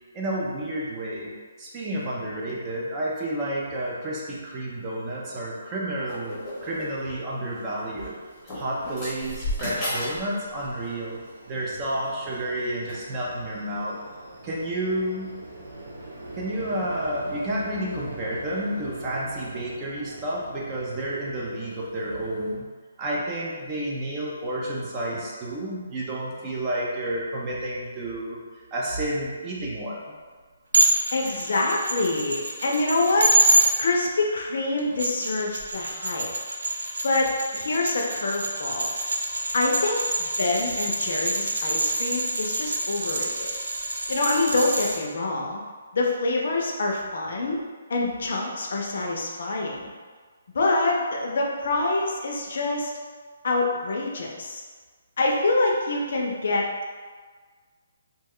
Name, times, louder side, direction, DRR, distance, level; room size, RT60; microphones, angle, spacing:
voice 1, 0.1-1.3 1.6-8.2 8.5-11.2 11.5-14.0 14.4-15.4 16.4-22.7 23.0-28.4 28.7-30.1, right 1 dB, 15° right, -5 dB, 0.4 m, -30 dB
sound 1, 3.9-4.0 4.3-22.5, right 1 dB, 55° right, 0.8 m, -41 dB
sound 2, 6.1-7.1 7.9-8.1 8.5-10.3 10.5-10.9 11.7-12.1 12.8-12.9, left 1 dB, 10° left, 0.8 m, -33 dB
sound 3, 30.7-33.7 34.8-45.0, right 1 dB, 85° right, 0.5 m, -26 dB
voice 2, 31.1-33.3 33.8-36.3 37.0-38.9 39.5-43.5 44.1-45.6 45.9-47.6 47.9-49.9 50.5-52.9 53.4-54.6 55.2-56.7, left 2 dB, 55° left, -1 dB, 0.5 m, -26 dB
2.9 x 2.2 x 3.6 m, 1.5 s
hypercardioid pair, 175°, 0 cm